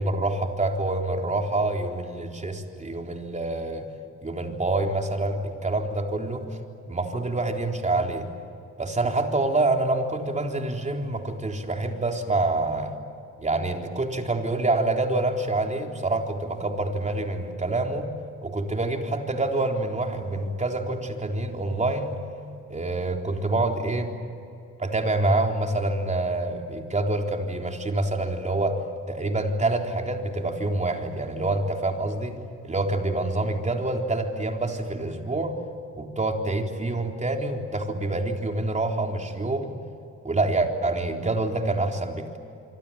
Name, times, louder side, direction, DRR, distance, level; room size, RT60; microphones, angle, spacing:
voice 1, 0.0-3.9 4.2-6.5 6.9-8.3 8.8-12.9 13.4-18.1 18.4-22.2 22.7-24.1 24.8-28.8 29.1-32.4 32.6-35.6 35.9-39.8 40.2-42.4, right 2 dB, 25° right, 2 dB, 4.0 m, -26 dB
26.0 x 25.0 x 8.9 m, 2.7 s
cardioid pair, 90°, 30 cm